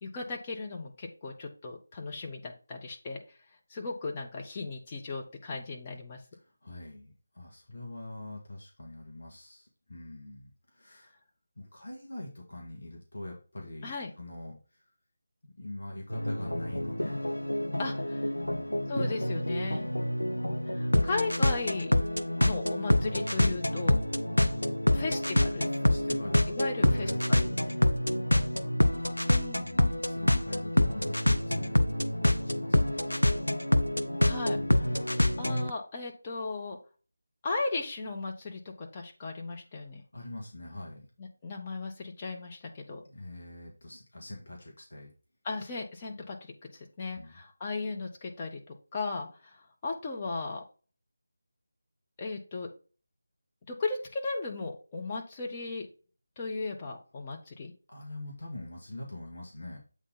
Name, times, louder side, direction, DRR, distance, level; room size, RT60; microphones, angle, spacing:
voice 1, 0.0-3.2 3.7-6.2 13.8-14.1 17.8-18.3 18.9-19.9 20.7-21.9 22.4-24.0 24.9-25.7 26.5-27.4 29.3-29.7 34.2-34.6 35.4-36.8 37.4-40.0 41.2-43.0 45.4-50.6 52.2-52.7 53.7-55.9 56.4-57.7, left 3 dB, 25° left, 0 dB, 1.3 m, -36 dB
voice 2, 6.4-11.1 11.6-14.9 15.4-17.3 18.4-19.0 24.9-25.2 25.7-26.5 26.8-28.8 29.6-33.4 34.5-35.1 40.1-41.1 43.1-45.1 47.2-47.4 57.9-59.8, left 1 dB, 60° left, -1 dB, 2.1 m, -44 dB
sound 1, 16.1-35.7, left 1 dB, 85° left, 0.6 m, -27 dB
8.0 x 4.0 x 4.0 m, 0.35 s
figure-of-eight pair, 160°, 0 cm